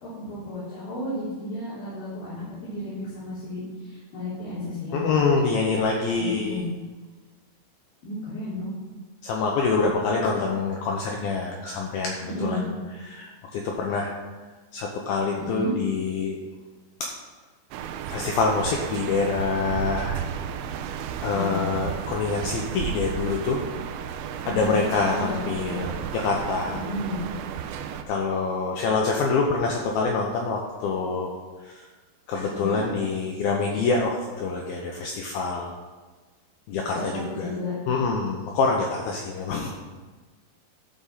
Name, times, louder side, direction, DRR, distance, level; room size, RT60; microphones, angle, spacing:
voice 1, 0.0-5.1 6.2-6.7 8.0-8.7 12.2-12.6 15.4-15.7 21.3-21.7 24.4-24.8 25.1-25.8 26.6-27.2 32.4-32.8 33.7-33.8 36.9-37.7, left 1 dB, 55° left, -11 dB, 4.7 m, -33 dB
voice 2, 4.9-6.7 9.2-12.7 13.0-14.1 14.7-16.4 18.1-20.2 21.2-23.6 24.5-26.8 28.1-31.3 31.6-31.9 32.3-35.8 36.7-37.5 37.9-39.7, left 4 dB, 80° left, 0 dB, 2.2 m, -26 dB
sound 1, 17.7-28.0, right 8 dB, 80° right, 2.8 m, -33 dB
13.5 x 5.4 x 5.6 m, 1.4 s
omnidirectional pair, 5.4 m